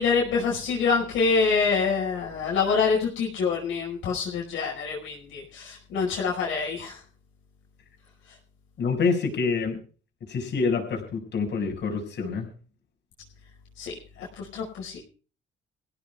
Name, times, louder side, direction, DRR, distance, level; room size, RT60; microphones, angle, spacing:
voice 1, 0.0-7.0 13.8-13.9 14.2-15.0, left 5 dB, 85° left, -3 dB, 5.3 m, -26 dB
voice 2, 8.8-9.8 10.3-12.5, left 4 dB, 60° left, 1 dB, 6.1 m, -26 dB
24.0 x 16.5 x 2.4 m, 0.38 s
cardioid pair, 90°, 20 cm